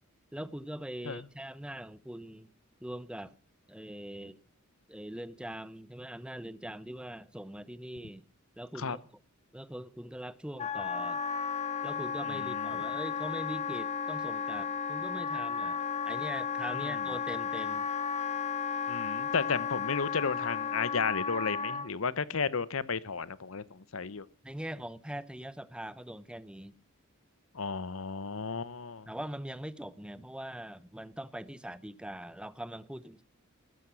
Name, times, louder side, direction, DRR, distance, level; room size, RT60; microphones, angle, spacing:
voice 1, 0.3-2.5 2.8-3.3 3.7-4.4 4.9-8.2 8.6-9.0 9.5-11.2 11.8-17.9 24.4-26.7 29.1-33.2, right 1 dB, 5° right, 0.8 m, -42 dB
Wind instrument woodwind instrument, 10.6-21.9, left 6 dB, 30° left, 1.1 m, -34 dB
voice 2, 12.3-12.8 16.7-17.0 18.9-24.2 27.5-29.1, left 5 dB, 70° left, 0.9 m, -33 dB
15.5 x 13.0 x 6.3 m
head